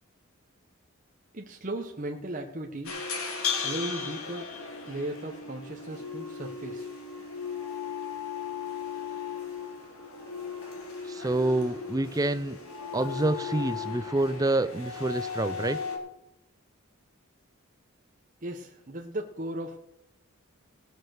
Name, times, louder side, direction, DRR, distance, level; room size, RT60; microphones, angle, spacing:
voice 1, 1.3-2.9 3.6-4.5 4.9-6.9 18.4-19.8, right 1 dB, 35° right, 1 dB, 1.0 m, -36 dB
sound 1, 2.8-16.0, left 6 dB, 90° left, 3.2 m, -36 dB
voice 2, 11.1-12.6 12.9-15.8, right 2 dB, 15° right, 14 dB, 0.4 m, -27 dB
19.0 x 6.5 x 6.4 m, 0.83 s
head